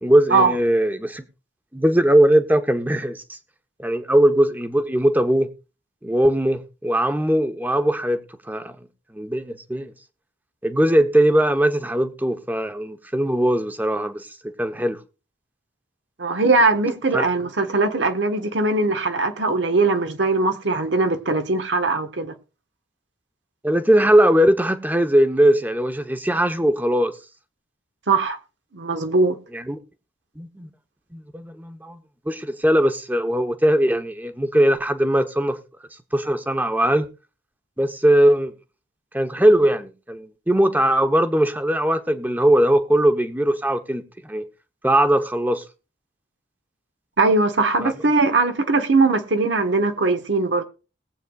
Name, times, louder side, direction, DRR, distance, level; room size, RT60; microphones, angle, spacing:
voice 1, 0.0-1.2 1.7-3.2 3.8-5.5 6.0-8.2 8.5-8.8 9.1-9.9 10.6-14.3 14.6-15.0 17.1-17.3 23.6-27.1 29.5-29.8 30.4-30.7 31.1-32.0 32.3-35.6 36.1-37.1 37.8-38.5 39.1-44.5 44.8-45.6 47.8-48.0, right 1 dB, 10° right, 0.9 m, -20 dB
voice 2, 16.2-22.3 28.1-28.4 28.7-29.4 47.2-50.6, right 3 dB, 80° right, 1.3 m, -20 dB
20.5 x 8.1 x 2.4 m
head